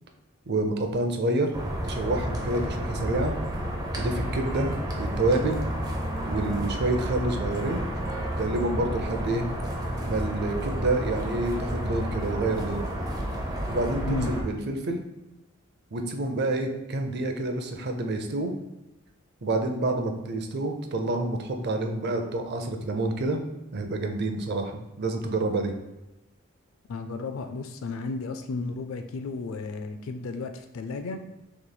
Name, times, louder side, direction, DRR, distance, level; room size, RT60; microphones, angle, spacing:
voice 1, 0.5-1.5 1.8-3.3 3.9-5.6 6.3-7.8 8.4-9.4 10.0-12.8 13.7-15.0 15.9-18.5 19.4-23.4 23.7-25.7, right 2 dB, 55° right, 4 dB, 0.6 m, -28 dB
sound 1, 1.5-14.4, equal, 20° right, 0.7 m, -31 dB
voice 2, 26.9-31.2, left 3 dB, 75° left, 7 dB, 0.4 m, -33 dB
6.3 x 3.1 x 2.2 m, 1.0 s
head